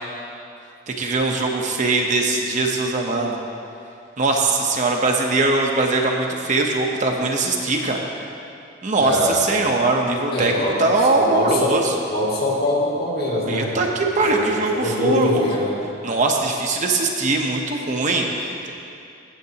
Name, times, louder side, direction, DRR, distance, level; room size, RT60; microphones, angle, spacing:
voice 1, 0.9-3.4 4.2-8.0 8.8-11.9 13.5-15.5 16.0-18.7, right 2 dB, 40° right, 1 dB, 0.8 m, -21 dB
voice 2, 9.0-9.4 10.3-10.8 11.2-11.8 12.1-13.8 14.3-15.8, left 1 dB, 50° left, -5 dB, 2.0 m, -23 dB
16.0 x 8.1 x 2.8 m, 2.6 s
head